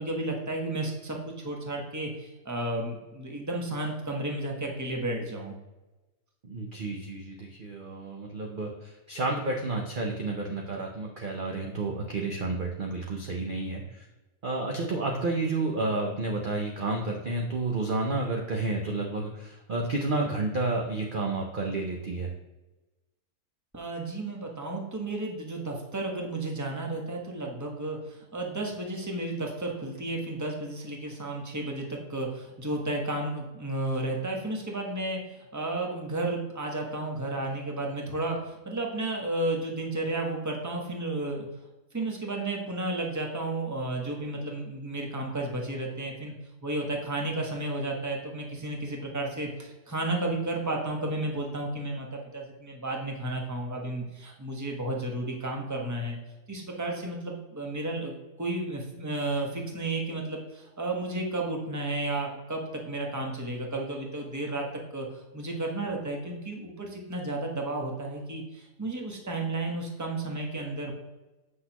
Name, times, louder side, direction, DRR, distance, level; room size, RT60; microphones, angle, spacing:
voice 1, 0.0-5.5 23.7-35.2 35.5-41.5 41.9-46.3 46.6-56.2 56.5-64.7 64.9-65.1 65.3-70.9, right 2 dB, 15° right, 0 dB, 1.0 m, -32 dB
voice 2, 6.4-14.1 14.4-22.3, right 2 dB, 45° right, 1 dB, 0.8 m, -31 dB
7.6 x 6.0 x 2.9 m, 1.1 s
omnidirectional pair, 1.5 m